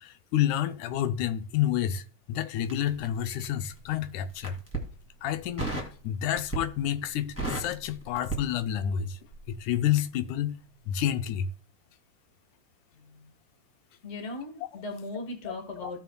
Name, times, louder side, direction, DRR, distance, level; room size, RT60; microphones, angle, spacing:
voice 1, 0.0-4.6 5.2-9.2 9.5-10.6 10.9-11.5 15.5-15.9, left 10 dB, 90° left, 2.1 m, -29 dB
Crackle, 2.6-3.8 4.3-4.9 5.6-6.0 6.3-6.8 7.1-9.0 9.3-9.5, right 2 dB, 5° left, 1.4 m, -34 dB
voice 2, 12.9-13.3 14.0-16.0, left 2 dB, 60° left, 0.7 m, -38 dB
16.5 x 5.8 x 2.2 m
omnidirectional pair, 3.4 m